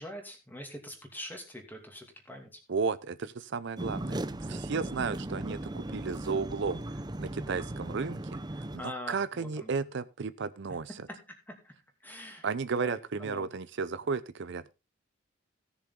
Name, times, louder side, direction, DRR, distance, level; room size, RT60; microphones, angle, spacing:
voice 1, 0.0-2.6 8.8-9.7 11.5-11.7 12.0-12.5 12.8-13.5, left 1 dB, 10° left, 2.6 m, -43 dB
voice 2, 2.7-10.9 12.4-14.6, right 5 dB, 60° right, 0.5 m, -34 dB
sound 1, 3.8-8.8, right 1 dB, 20° right, 0.7 m, -37 dB
16.5 x 7.0 x 3.7 m
head